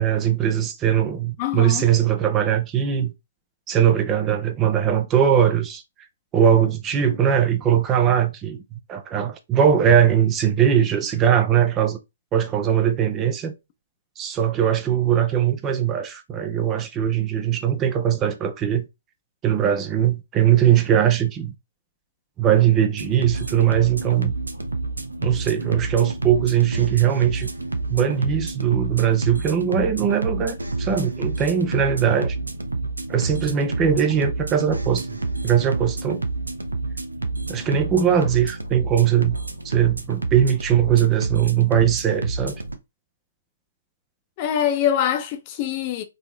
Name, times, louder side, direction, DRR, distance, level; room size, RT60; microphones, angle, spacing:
voice 1, 0.0-3.1 3.7-5.8 6.3-12.0 12.3-13.5 14.2-18.9 19.4-21.5 22.4-24.3 25.2-27.5 27.9-32.4 33.1-35.2 35.4-36.2 37.5-39.4 39.6-42.6, right 9 dB, 20° right, 0.6 m, -20 dB
voice 2, 1.4-1.9 44.4-46.0, left 10 dB, 35° left, 0.8 m, -24 dB
sound 1, 23.0-42.8, right 3 dB, 90° right, 0.7 m, -29 dB
4.0 x 3.0 x 3.2 m
figure-of-eight pair, 130°, 0 cm